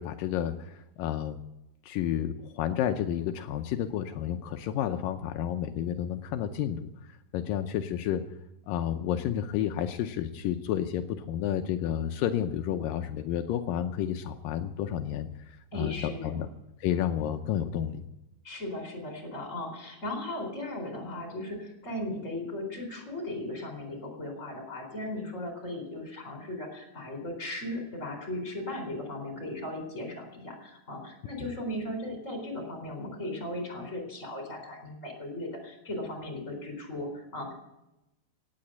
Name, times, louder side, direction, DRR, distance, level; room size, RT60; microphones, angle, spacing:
voice 1, 0.0-1.4 1.8-6.9 7.3-8.2 8.7-16.5 16.8-18.0, left 10 dB, 85° left, 7 dB, 2.0 m, -31 dB
voice 2, 15.7-16.4 18.4-37.5, left 1 dB, 20° left, 4 dB, 3.8 m, -37 dB
17.5 x 9.5 x 7.8 m, 0.91 s
omnidirectional pair, 4.8 m